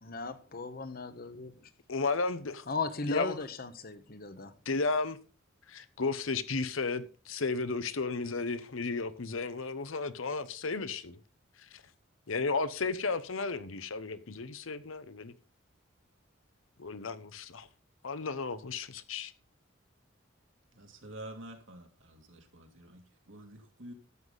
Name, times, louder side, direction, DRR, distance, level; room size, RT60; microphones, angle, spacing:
voice 1, 0.0-1.7 2.7-4.5, left 4 dB, 45° left, 1.0 m, -37 dB
voice 2, 1.9-2.7 3.1-3.3 4.7-5.2 5.7-11.2 11.7-11.8 12.3-15.3 16.8-17.7 18.0-19.3, left 3 dB, 85° left, 0.9 m, -33 dB
voice 3, 20.7-23.9, right 1 dB, 70° right, 2.2 m, -48 dB
12.5 x 8.1 x 4.0 m
head